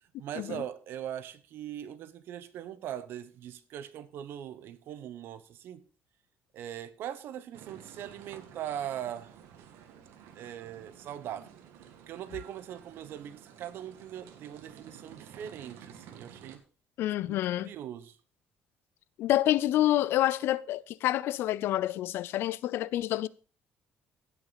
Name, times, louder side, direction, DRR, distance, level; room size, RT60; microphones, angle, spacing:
voice 1, 0.2-5.8 6.5-9.4 10.3-16.6 17.2-18.2, right 10 dB, 60° right, 0.9 m, -41 dB
sound 1, 7.5-16.6, right 8 dB, 85° right, 1.7 m, -52 dB
voice 2, 17.0-17.7 19.2-23.3, left 14 dB, 70° left, 0.5 m, -28 dB
16.5 x 6.0 x 4.0 m
cardioid pair, 150°, 4 cm